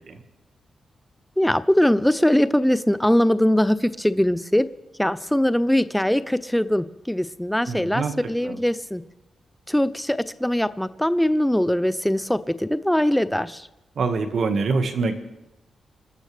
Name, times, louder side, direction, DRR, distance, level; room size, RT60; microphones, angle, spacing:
voice 1, 1.4-4.7 5.0-9.0 9.7-13.7, left 1 dB, 5° left, 14 dB, 0.5 m, -21 dB
voice 2, 7.7-8.1 8.4-8.6 14.0-15.1, right 4 dB, 65° right, 6 dB, 1.7 m, -24 dB
27.5 x 13.0 x 3.4 m, 0.93 s
wide cardioid pair, 115°, 0 cm